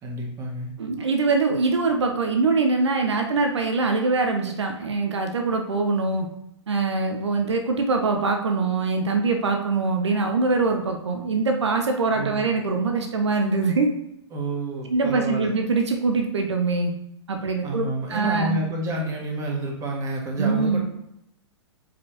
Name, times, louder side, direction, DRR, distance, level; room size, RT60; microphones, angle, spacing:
voice 1, 0.0-0.7 12.1-12.4 14.3-15.5 17.6-20.8, right 1 dB, 20° right, -1 dB, 1.7 m, -29 dB
voice 2, 0.8-6.3 6.7-13.9 14.9-16.9 17.3-18.6 20.4-20.8, right 3 dB, 65° right, 4 dB, 0.9 m, -23 dB
7.1 x 5.1 x 3.0 m, 0.80 s
figure-of-eight pair, 110°, 15 cm